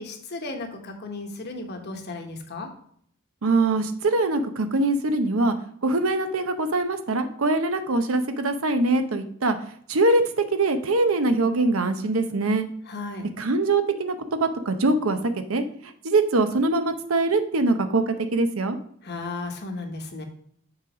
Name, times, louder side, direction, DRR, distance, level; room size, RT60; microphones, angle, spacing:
voice 1, 0.0-2.7 12.8-13.3 19.0-20.2, left 3 dB, 55° left, 4 dB, 1.2 m, -34 dB
voice 2, 3.4-5.6 5.8-9.6 9.9-12.7 13.4-15.2 15.5-15.6 16.0-18.8, right 2 dB, 80° right, 8 dB, 0.8 m, -23 dB
7.0 x 4.0 x 4.9 m, 0.63 s
head